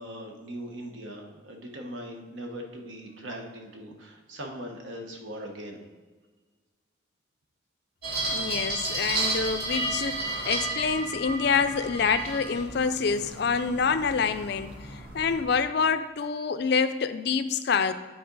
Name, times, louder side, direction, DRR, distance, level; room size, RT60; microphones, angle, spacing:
voice 1, 0.0-5.8, equal, 75° right, 2 dB, 1.2 m, -40 dB
sound 1, 8.0-15.5, right 2 dB, 50° right, 1.8 m, -33 dB
voice 2, 8.3-17.9, left 5 dB, 55° left, 11 dB, 0.4 m, -27 dB
10.0 x 4.3 x 3.9 m, 1.4 s
head